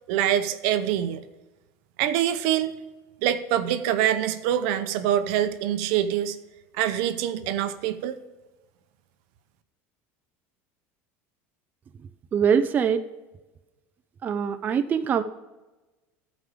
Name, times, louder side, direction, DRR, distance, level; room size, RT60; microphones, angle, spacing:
voice 1, 0.1-1.2 2.0-2.8 3.2-6.4 6.7-8.2, right 10 dB, 70° right, 11 dB, 0.7 m, -25 dB
voice 2, 12.3-13.0 14.2-15.2, right 7 dB, 25° right, 9 dB, 0.4 m, -23 dB
14.0 x 5.0 x 4.9 m, 1.1 s
cardioid pair, 140°, 7 cm